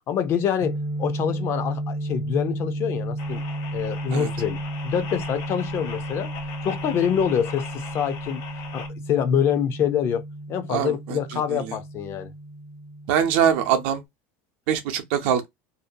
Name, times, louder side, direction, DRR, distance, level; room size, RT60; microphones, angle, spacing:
voice 1, 0.1-3.4 3.7-6.3 6.6-8.4 8.7-10.2 10.5-12.3, left 8 dB, 40° left, 0.5 m, -26 dB
sound 1, 0.6-14.1, right 1 dB, 30° right, 0.5 m, -33 dB
sound 2, 3.2-8.9, left 6 dB, 60° left, 1.0 m, -39 dB
voice 2, 10.7-11.7 13.1-14.0 14.7-15.5, right 9 dB, 70° right, 0.6 m, -23 dB
2.6 x 2.2 x 2.6 m
supercardioid pair, 130°, 6 cm